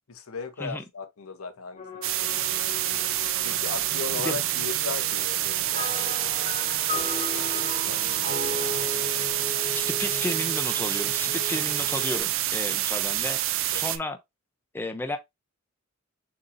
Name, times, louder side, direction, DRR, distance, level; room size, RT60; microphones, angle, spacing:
voice 1, 0.1-3.1 3.4-7.1 7.5-8.6 13.7-13.9, left 4 dB, 80° left, 0.7 m, -39 dB
sound 1, 1.7-12.2, left 3 dB, 35° left, 1.1 m, -42 dB
sound 2, 2.0-14.0, right 13 dB, 65° right, 0.4 m, -27 dB
sound 3, 5.7-11.2, left 3 dB, 35° right, 1.0 m, -36 dB
voice 2, 9.7-13.4 13.7-14.2 14.7-15.2, left 1 dB, 10° left, 0.5 m, -33 dB
6.6 x 2.8 x 2.5 m
head